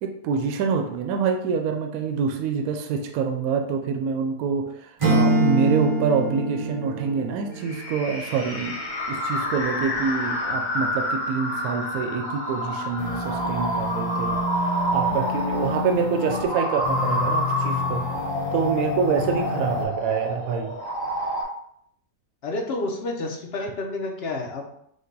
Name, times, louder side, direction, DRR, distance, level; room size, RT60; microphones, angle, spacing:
voice 1, 0.0-8.8 9.1-14.4 14.9-18.1 18.5-20.8, right 6 dB, 75° right, 4 dB, 1.0 m, -26 dB
Acoustic guitar / Strum, 5.0-8.1, right 1 dB, 40° right, 0.4 m, -24 dB
sound 1, 7.6-21.4, equal, 20° left, 1.2 m, -28 dB
sound 2, 13.0-16.4 16.8-19.8, left 4 dB, 80° left, 1.3 m, -30 dB
voice 2, 22.4-24.8, left 2 dB, 55° left, 1 dB, 0.8 m, -30 dB
5.2 x 2.2 x 3.9 m, 0.70 s
omnidirectional pair, 1.6 m